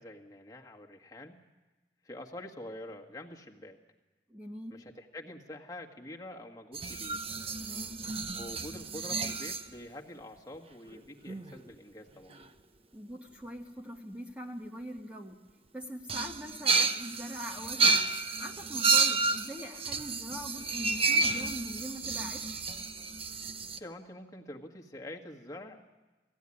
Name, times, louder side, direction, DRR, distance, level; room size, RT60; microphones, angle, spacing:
voice 1, 0.0-1.4 2.0-3.8 4.7-7.2 8.3-12.4 23.7-25.8, left 1 dB, 20° left, 1 dB, 1.6 m, -46 dB
voice 2, 4.3-4.7 7.6-8.0 12.9-15.4 15.7-18.0 18.4-22.4, equal, 5° right, 0 dB, 1.3 m, -42 dB
sound 1, 6.7-9.7 10.9-11.0 11.3-11.6 12.3-12.4 16.1-23.8, right 4 dB, 35° right, 0.8 m, -30 dB
19.0 x 15.0 x 9.8 m, 1.2 s
head